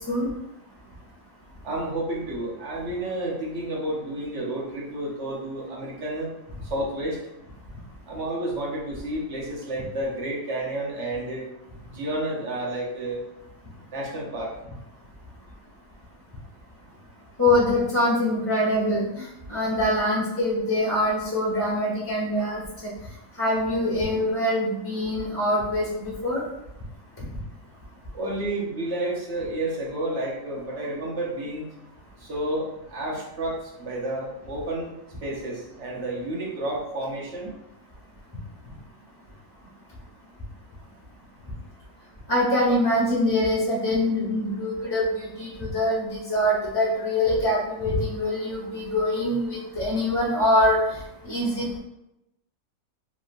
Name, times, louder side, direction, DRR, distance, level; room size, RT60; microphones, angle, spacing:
voice 1, 1.6-6.3 6.7-7.2 8.0-11.5 11.9-13.2 13.9-14.5 28.1-31.7 32.2-34.9 35.2-37.6, right 1 dB, 60° right, -3 dB, 1.0 m, -30 dB
voice 2, 17.4-22.6 23.4-26.4 42.3-50.8 51.2-51.8, left 1 dB, 20° left, -10 dB, 0.9 m, -24 dB
3.0 x 2.7 x 2.5 m, 0.89 s
omnidirectional pair, 1.4 m